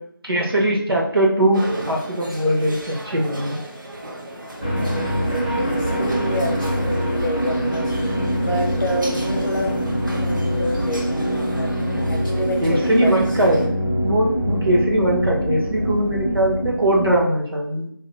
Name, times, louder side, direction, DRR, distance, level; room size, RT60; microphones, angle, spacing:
voice 1, 0.2-3.6 12.6-13.7 14.0-17.9, right 1 dB, 85° right, -2 dB, 1.0 m, -20 dB
sound 1, 1.5-13.7, right 1 dB, 60° right, 0.7 m, -35 dB
sound 2, 4.6-17.2, equal, 25° left, 0.4 m, -24 dB
voice 2, 4.7-7.9 8.4-9.7 10.2-13.4, left 1 dB, 60° left, -1 dB, 0.7 m, -29 dB
2.8 x 2.2 x 3.1 m, 0.66 s
figure-of-eight pair, 175°, 12 cm